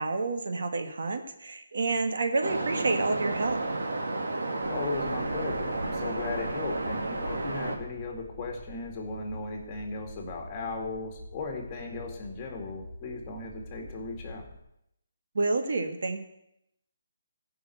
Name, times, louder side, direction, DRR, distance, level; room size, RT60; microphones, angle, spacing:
voice 1, 0.0-3.7 15.3-16.2, right 3 dB, 65° right, 6 dB, 1.6 m, -29 dB
Waves surf, 2.4-7.8, right 2 dB, 85° right, 2.2 m, -31 dB
sound 1, 4.6-14.6, equal, 25° right, 4.2 m, -46 dB
voice 2, 4.7-14.4, left 3 dB, 20° left, 1 dB, 2.3 m, -37 dB
15.0 x 5.8 x 7.9 m, 0.80 s
hypercardioid pair, 165°, 0 cm